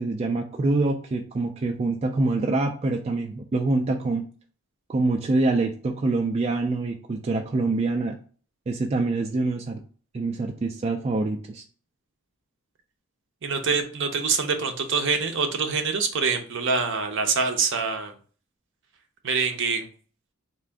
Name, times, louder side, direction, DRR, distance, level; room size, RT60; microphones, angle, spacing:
voice 1, 0.0-4.2 4.9-8.2 8.7-9.8 10.1-11.6, right 2 dB, 30° right, 3 dB, 0.3 m, -25 dB
voice 2, 13.4-18.1 19.2-19.9, right 5 dB, 60° right, 5 dB, 0.6 m, -25 dB
4.0 x 2.5 x 3.4 m, 0.41 s
head